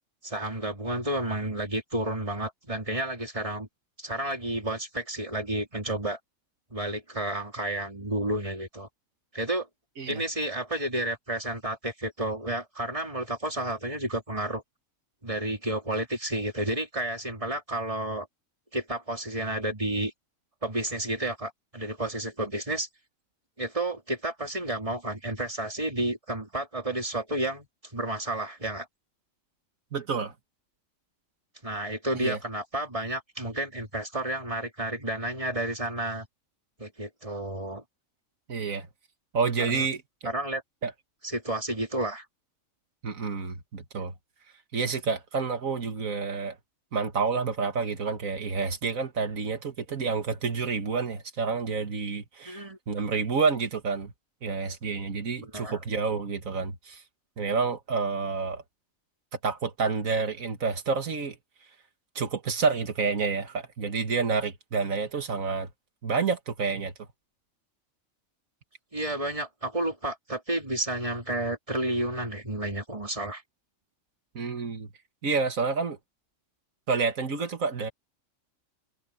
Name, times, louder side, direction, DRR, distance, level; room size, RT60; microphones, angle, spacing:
voice 1, 0.2-3.7 4.0-6.2 6.7-8.9 9.3-9.7 10.1-14.6 15.2-18.3 18.7-20.1 20.6-22.9 23.6-28.9 31.6-36.3 36.8-37.8 39.7-39.9 40.2-40.6 41.2-42.2 52.5-52.8 55.4-55.8 68.9-73.4, right 1 dB, 25° right, 3.7 m, -31 dB
voice 2, 29.9-30.3 32.2-32.4 38.5-38.9 39.3-40.3 40.8-40.9 43.0-44.1 44.7-46.6 46.9-54.1 54.4-57.0 57.4-58.6 59.4-61.4 62.2-65.7 66.0-66.9 74.3-74.9 75.2-76.0 76.9-77.9, right 5 dB, 85° right, 2.1 m, -29 dB
omnidirectional pair, 1.4 m